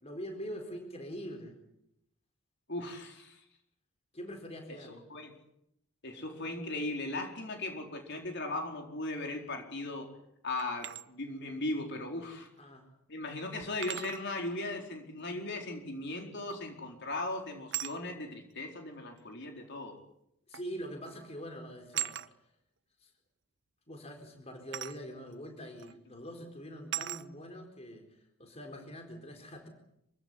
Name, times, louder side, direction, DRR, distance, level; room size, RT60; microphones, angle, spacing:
voice 1, 0.0-1.6 4.1-5.0 12.6-12.9 20.5-22.1 23.0-23.1 23.9-29.7, equal, 30° left, 4 dB, 4.3 m, -44 dB
voice 2, 2.7-3.4 4.7-4.8 5.1-5.3 6.0-10.1 10.4-12.5 13.1-20.0, left 2 dB, 50° left, 3 dB, 4.4 m, -38 dB
sound 1, 10.6-11.0 12.6-12.7 13.8-14.3 16.5-16.8 17.7-18.0 19.2-19.3 20.5-20.7 21.0-21.3 21.9-22.3 24.7-25.0 25.8-25.9 26.9-27.3, right 13 dB, 55° right, 0.8 m, -38 dB
26.5 x 16.5 x 9.8 m, 0.79 s
head